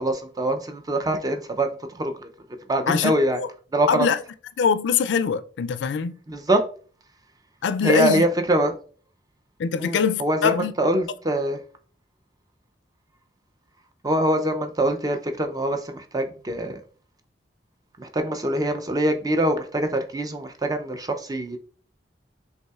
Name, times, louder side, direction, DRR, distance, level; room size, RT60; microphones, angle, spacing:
voice 1, 0.0-2.3 2.7-3.4 3.7-4.1 6.3-6.6 7.8-8.7 9.8-11.6 14.0-16.8 18.0-21.6, right 1 dB, 20° right, 0.5 m, -24 dB
voice 2, 2.9-3.5 3.9-4.2 4.6-6.2 7.6-8.2 9.6-10.7, left 6 dB, 80° left, 0.4 m, -23 dB
5.4 x 3.3 x 2.3 m
head